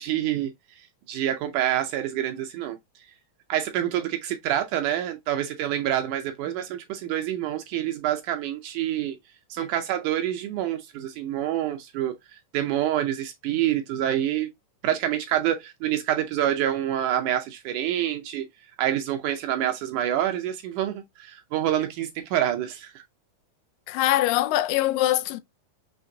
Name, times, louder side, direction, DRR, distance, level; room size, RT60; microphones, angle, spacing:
voice 1, 0.0-2.8 3.5-9.2 9.5-12.2 12.5-14.5 14.8-18.5 18.8-23.0, right 11 dB, 75° right, 1.9 m, -27 dB
voice 2, 23.9-25.4, left 15 dB, 85° left, 2.2 m, -23 dB
5.8 x 3.1 x 2.6 m
omnidirectional pair, 3.9 m